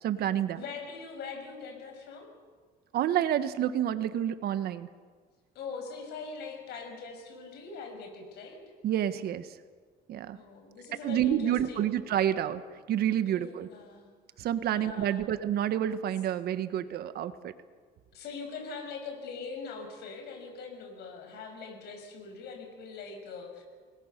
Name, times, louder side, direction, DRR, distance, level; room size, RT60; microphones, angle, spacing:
voice 1, 0.0-0.6 2.9-4.9 8.8-9.5 10.1-10.4 11.0-12.6 12.9-13.7 14.4-17.5, right 10 dB, 70° right, 12 dB, 1.5 m, -29 dB
voice 2, 0.6-2.3 5.5-8.6 10.3-11.9 13.2-14.1 14.7-15.3 18.1-23.6, left 5 dB, 75° left, 4 dB, 6.6 m, -42 dB
29.0 x 21.0 x 6.8 m, 1.5 s
cardioid pair, 110°, 17 cm